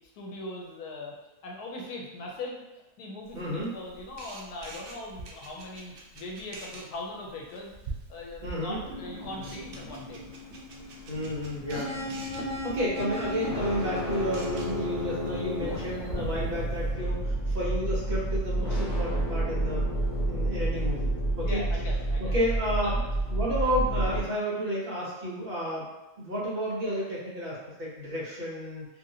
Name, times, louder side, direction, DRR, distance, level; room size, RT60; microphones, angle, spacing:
voice 1, 0.2-1.1 1.4-2.6 3.0-7.7 8.1-10.2 21.4-22.3, left 2 dB, 80° left, -1 dB, 1.2 m, -40 dB
Camera, 3.2-16.9, right 2 dB, 90° right, 0.4 m, -46 dB
voice 2, 3.3-3.7 8.4-8.8 11.1-11.9 12.2-19.9 20.3-21.6 22.2-23.0 23.3-25.9 26.2-28.9, equal, 45° right, -6 dB, 0.9 m, -31 dB
sound 1, 8.9-24.2, right 1 dB, 60° left, 1.2 m, -30 dB
2.8 x 2.7 x 2.7 m, 0.99 s
omnidirectional pair, 1.6 m